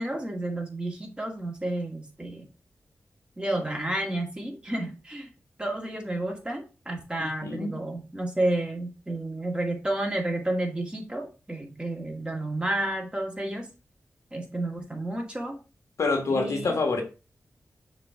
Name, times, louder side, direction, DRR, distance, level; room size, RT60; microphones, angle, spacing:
voice 1, 0.0-2.5 3.4-5.3 5.6-13.7 14.3-15.6 16.3-16.8, right 1 dB, 20° right, 2.1 m, -31 dB
voice 2, 7.2-7.8 16.0-17.0, left 3 dB, 75° left, 1.5 m, -27 dB
6.5 x 3.2 x 5.0 m
cardioid pair, 65°, 5 cm